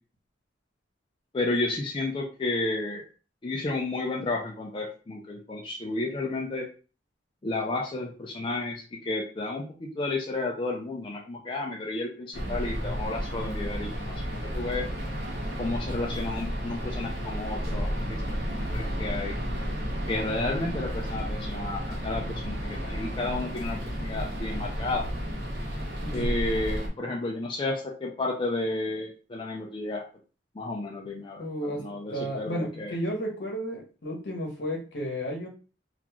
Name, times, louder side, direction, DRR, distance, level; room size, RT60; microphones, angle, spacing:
voice 1, 1.3-3.0 3.4-6.7 7.4-14.8 15.6-18.4 18.7-19.3 20.1-25.0 26.1-30.0 30.6-32.9, left 2 dB, 30° left, -1 dB, 0.4 m, -32 dB
sound 1, 12.3-26.9, equal, 65° right, 0.9 m, -32 dB
voice 2, 26.0-26.3 31.4-35.5, equal, 70° left, 0 dB, 0.9 m, -33 dB
2.9 x 2.4 x 2.2 m, 0.35 s
head